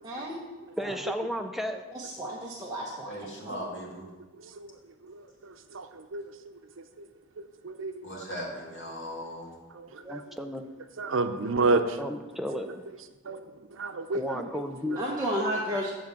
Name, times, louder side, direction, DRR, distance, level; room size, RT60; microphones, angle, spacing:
voice 1, 0.0-0.4 0.8-0.9 1.9-3.2 3.5-3.6 14.3-14.5 15.0-15.9, equal, 20° right, -5 dB, 1.0 m, -32 dB
voice 2, 0.8-1.8 10.0-10.7 12.0-12.8 14.1-15.0, equal, ahead, 5 dB, 0.5 m, -33 dB
voice 3, 3.0-4.0 8.0-9.5, equal, 80° left, -4 dB, 2.6 m, -38 dB
voice 4, 5.1-6.2 7.6-8.2 9.7-10.2 11.0-12.0 13.3-13.4 13.8-14.2 14.9-15.0, right 3 dB, 85° right, 9 dB, 0.7 m, -30 dB
7.1 x 6.1 x 7.6 m, 1.2 s
head